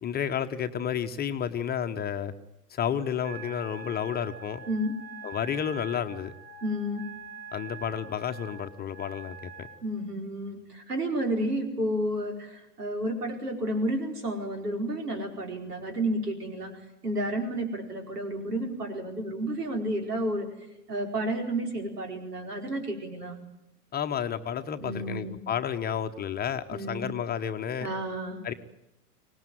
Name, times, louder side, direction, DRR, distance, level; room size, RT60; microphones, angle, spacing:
voice 1, 0.0-2.3 2.7-4.6 5.2-6.3 7.5-9.7 23.9-27.9 28.4-28.5, left 8 dB, 20° left, 7 dB, 1.1 m, -31 dB
Wind instrument woodwind instrument, 3.2-9.8, right 5 dB, 30° right, 5.2 m, -45 dB
voice 2, 6.6-7.0 9.8-16.7 17.0-20.5 20.9-23.4 24.8-25.4 26.7-27.1 27.8-28.4, right 1 dB, 75° right, 4 dB, 4.9 m, -31 dB
24.5 x 19.0 x 9.3 m, 0.88 s
figure-of-eight pair, 90°, 47 cm